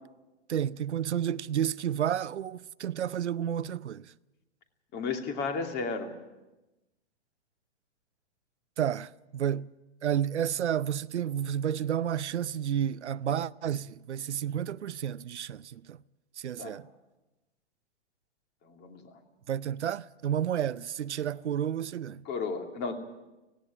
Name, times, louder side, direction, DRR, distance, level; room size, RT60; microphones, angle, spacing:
voice 1, 0.5-4.1 8.8-9.7 10.0-16.0 16.4-16.9 19.5-22.2, right 9 dB, 90° right, 0.6 m, -31 dB
voice 2, 4.9-6.1 16.6-16.8 18.6-19.2 22.2-22.9, left 4 dB, 30° left, 2.8 m, -33 dB
17.5 x 17.5 x 8.7 m
hypercardioid pair, 130°, 33 cm